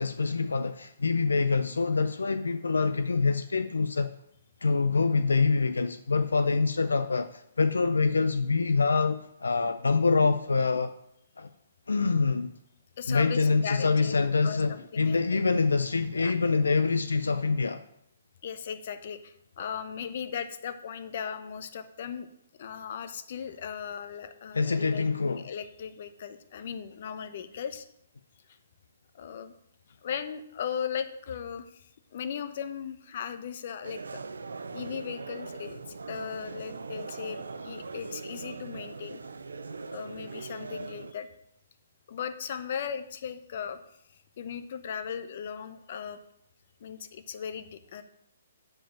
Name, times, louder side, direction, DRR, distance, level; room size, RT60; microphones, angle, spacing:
voice 1, 0.0-4.1 4.6-10.9 11.4-11.5 11.9-12.5 13.1-17.8 24.5-25.4, left 4 dB, 85° left, 0.5 m, -25 dB
voice 2, 13.0-14.1 14.4-15.2 16.2-16.4 18.4-22.3 22.6-27.9 29.1-29.5 30.0-34.2 34.7-39.2 39.9-41.3 42.1-43.8 44.4-46.2 46.8-48.0, left 7 dB, 55° left, 0.9 m, -37 dB
sound 1, 33.8-41.1, right 4 dB, 85° right, 0.6 m, -40 dB
7.3 x 5.1 x 7.3 m
hypercardioid pair, 140°, 0 cm